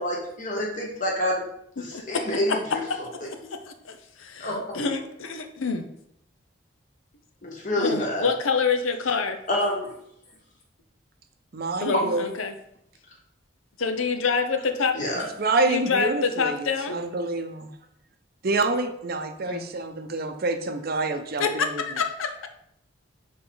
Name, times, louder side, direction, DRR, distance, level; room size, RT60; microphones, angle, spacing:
voice 1, 0.0-1.4 1.8-2.8 4.4-4.8 7.4-8.3 9.5-9.9 11.9-12.0 14.9-15.3, left 1 dB, 40° left, -1 dB, 1.5 m, -27 dB
voice 2, 1.8-2.6 2.9-3.4 3.7-5.8 7.8-9.4 11.8-12.6 13.8-15.0 15.7-17.0 19.5-19.7 21.4-22.5, left 5 dB, 85° left, 6 dB, 0.7 m, -27 dB
voice 3, 11.5-12.2 15.4-17.7 18.4-21.8, right 3 dB, 50° right, 7 dB, 0.6 m, -27 dB
6.7 x 3.6 x 3.9 m, 0.75 s
head